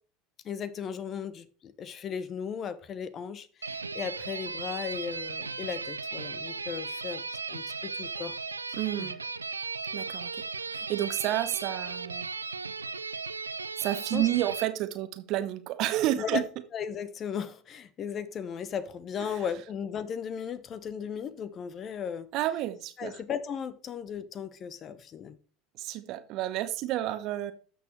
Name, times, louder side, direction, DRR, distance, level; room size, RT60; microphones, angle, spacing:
voice 1, 0.4-7.2 7.5-8.4 9.0-9.1 14.1-14.3 16.2-16.4 16.7-22.3 23.0-25.4, left 7 dB, 40° left, 16 dB, 0.8 m, -36 dB
sound 1, 3.6-14.6, right 4 dB, 90° right, 0.3 m, -36 dB
voice 2, 8.7-9.2 9.9-10.4 10.7-12.3 13.8-16.4 22.3-23.2 25.8-27.5, right 14 dB, 50° right, 11 dB, 1.0 m, -30 dB
12.5 x 6.3 x 3.2 m, 0.40 s
figure-of-eight pair, 75°, 0 cm